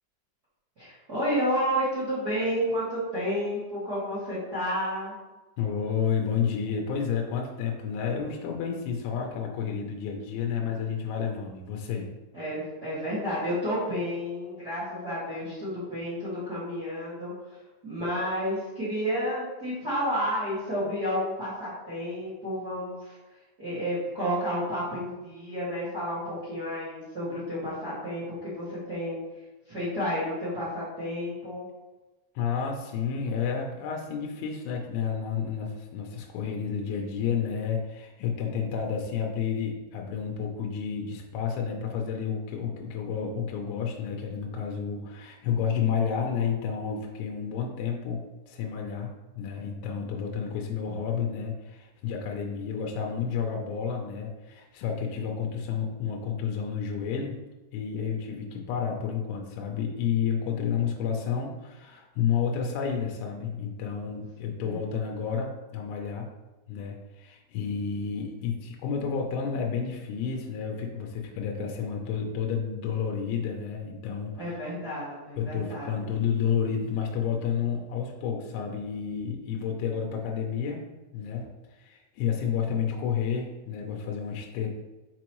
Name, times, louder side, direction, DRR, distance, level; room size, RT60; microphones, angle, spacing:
voice 1, 0.8-5.1 12.3-23.2 23.6-29.2 29.7-31.6 64.6-64.8 74.3-75.9, equal, 65° right, -10 dB, 1.0 m, -31 dB
voice 2, 5.6-12.1 32.4-48.2 48.5-49.1 49.4-57.4 57.7-66.3 66.7-74.5 75.4-80.8 81.1-84.7, left 7 dB, 80° left, 0 dB, 3.1 m, -30 dB
6.1 x 5.4 x 3.0 m, 1.1 s
omnidirectional pair, 5.5 m